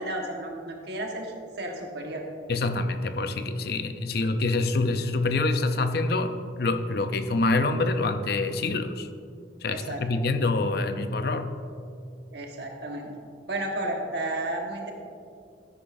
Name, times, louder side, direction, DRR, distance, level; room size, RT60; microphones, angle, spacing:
voice 1, 0.0-2.2 9.7-10.0 12.3-13.1 13.5-14.9, right 1 dB, 60° right, 1 dB, 1.4 m, -32 dB
voice 2, 2.5-9.1 9.6-11.6, left 3 dB, 55° left, 9 dB, 0.5 m, -26 dB
12.5 x 10.0 x 2.6 m, 2.4 s
head